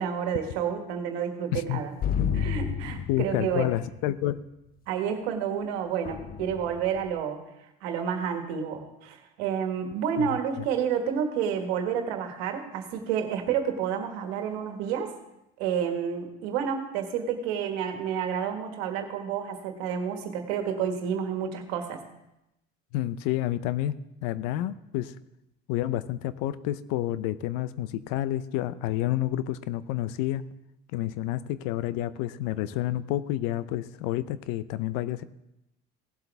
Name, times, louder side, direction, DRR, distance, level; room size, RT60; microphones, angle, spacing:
voice 1, 0.0-1.9 2.4-3.7 4.9-7.4 7.8-15.1 15.6-22.0, right 8 dB, 85° right, 5 dB, 1.6 m, -30 dB
voice 2, 1.5-1.8 2.2-2.4 3.1-4.4 10.2-10.7 22.9-25.2 25.7-30.4 30.9-35.2, left 13 dB, 80° left, 16 dB, 0.6 m, -29 dB
sound 1, 2.0-3.8 6.0-7.0, left 8 dB, 30° left, 0.4 m, -30 dB
17.5 x 7.9 x 3.5 m, 0.88 s
supercardioid pair, 90°, 31 cm